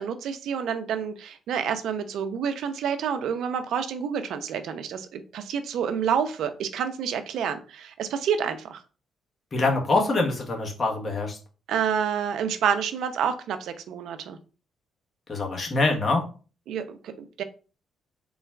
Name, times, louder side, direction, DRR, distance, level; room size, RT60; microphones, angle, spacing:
voice 1, 0.0-8.8 11.7-14.4 16.7-17.4, right 7 dB, 75° right, 9 dB, 0.5 m, -28 dB
voice 2, 9.5-11.4 15.3-16.2, left 3 dB, 35° left, 1 dB, 1.2 m, -24 dB
3.9 x 2.4 x 4.3 m, 0.36 s
cardioid pair, 90°, 0 cm